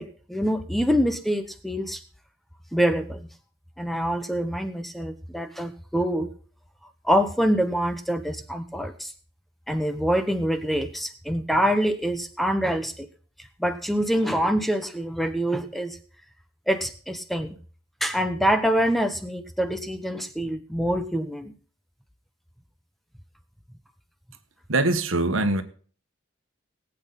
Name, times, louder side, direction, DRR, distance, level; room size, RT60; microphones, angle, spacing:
voice 1, 0.0-2.0 2.7-3.3 3.8-6.3 7.0-9.1 9.7-13.1 13.6-16.0 16.7-17.5 18.0-21.5, equal, ahead, 0.9 m, -25 dB
voice 2, 24.7-25.6, right 2 dB, 80° right, 1.4 m, -22 dB
19.0 x 8.5 x 4.0 m
head